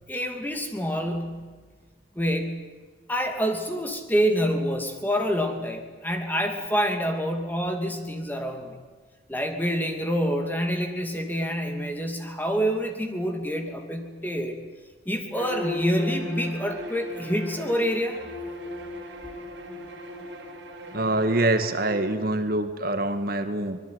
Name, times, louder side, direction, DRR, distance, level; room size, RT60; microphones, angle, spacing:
voice 1, 0.1-1.5 2.2-2.5 3.1-8.8 9.3-14.6 15.1-18.2, equal, 10° left, 4 dB, 2.7 m, -27 dB
Bowed string instrument, 15.3-22.1, left 1 dB, 70° right, 6.8 m, -37 dB
voice 2, 20.9-23.8, right 2 dB, 50° right, 8 dB, 1.8 m, -25 dB
25.0 x 21.5 x 9.6 m, 1.4 s
head